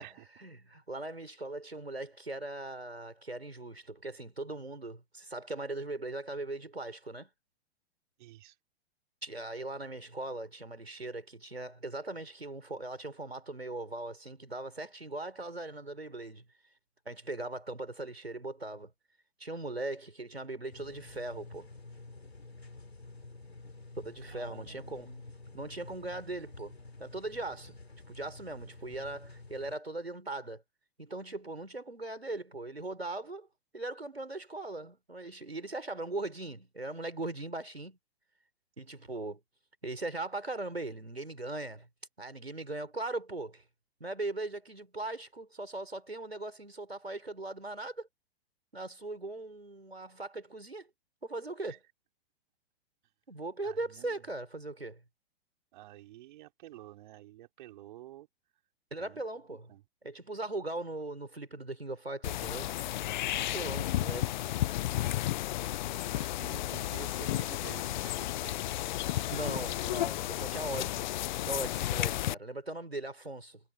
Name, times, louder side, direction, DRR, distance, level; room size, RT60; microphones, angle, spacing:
voice 1, 0.4-7.3 9.2-16.4 17.0-18.9 19.4-21.7 24.0-25.2 25.5-26.7 27.0-27.8 28.1-30.6 31.0-33.5 33.7-38.0 38.8-39.4 39.8-41.9 42.2-43.6 44.0-48.1 48.7-50.9 51.2-51.8 53.3-55.0 58.9-59.7 60.0-62.7 63.3-64.4 69.3-71.1 71.4-73.6, right 2 dB, 90° right, 5.1 m, -39 dB
voice 2, 8.2-8.6 24.2-25.3 51.7-51.8 53.6-54.3 55.7-58.3 59.0-59.2 59.5-59.8 63.3-63.7 64.5-64.6 66.1-69.3, right 15 dB, 50° right, 4.1 m, -51 dB
sound 1, 20.7-29.8, left 3 dB, 85° left, 3.6 m, -50 dB
sound 2, 62.2-72.3, left 14 dB, 50° left, 0.7 m, -33 dB
figure-of-eight pair, 105°, 30 cm